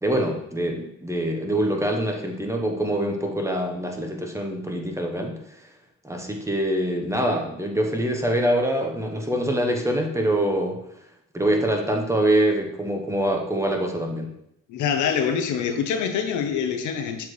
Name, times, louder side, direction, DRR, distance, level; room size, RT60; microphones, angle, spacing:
voice 1, 0.0-5.3 6.0-10.8 11.3-14.3, right 1 dB, 10° right, 2 dB, 0.9 m, -24 dB
voice 2, 14.7-17.3, left 7 dB, 75° left, 5 dB, 0.8 m, -25 dB
7.0 x 4.4 x 3.2 m, 0.79 s
cardioid pair, 90°, 30 cm